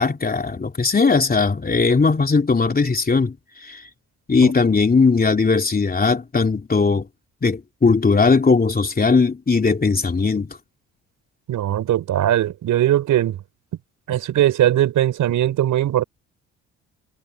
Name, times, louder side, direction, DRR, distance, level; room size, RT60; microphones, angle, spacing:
voice 1, 0.0-3.3 3.6-3.8 4.3-7.1 7.4-10.6, left 4 dB, 30° left, 3.2 m, -18 dB
voice 2, 11.5-13.4 14.1-16.0, right 12 dB, 70° right, 4.8 m, -19 dB
supercardioid pair, 65°, 32 cm